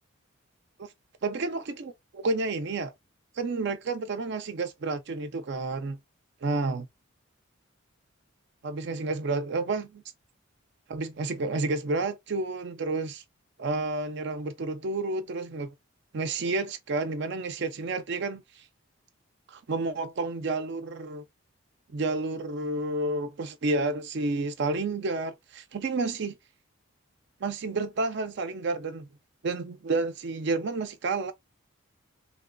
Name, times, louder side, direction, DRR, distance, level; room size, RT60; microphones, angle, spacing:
voice 1, 1.2-2.9 3.4-6.0 6.4-6.8 8.6-10.0 10.9-13.2 13.6-15.7 16.1-18.6 19.5-21.2 21.9-26.4 27.4-29.1 29.4-31.3, right 3 dB, 55° right, 0.4 m, -30 dB
3.0 x 2.9 x 2.5 m
head